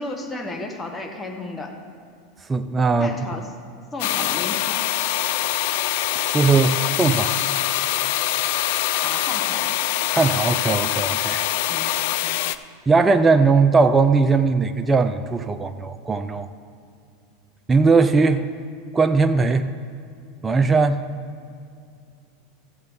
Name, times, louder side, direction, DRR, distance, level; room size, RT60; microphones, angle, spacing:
voice 1, 0.0-1.7 3.0-3.5 3.9-4.8 9.0-9.8 11.7-12.4, left 2 dB, 20° left, 3 dB, 1.4 m, -33 dB
voice 2, 2.5-3.1 6.2-7.4 10.1-11.4 12.9-16.5 17.7-18.4 18.9-19.6 20.4-21.0, right 4 dB, 20° right, 7 dB, 0.5 m, -19 dB
sound 1, 4.0-12.6, left 13 dB, 65° left, 0.3 m, -24 dB
14.5 x 7.7 x 3.6 m, 2.4 s
hypercardioid pair, 100°, 0 cm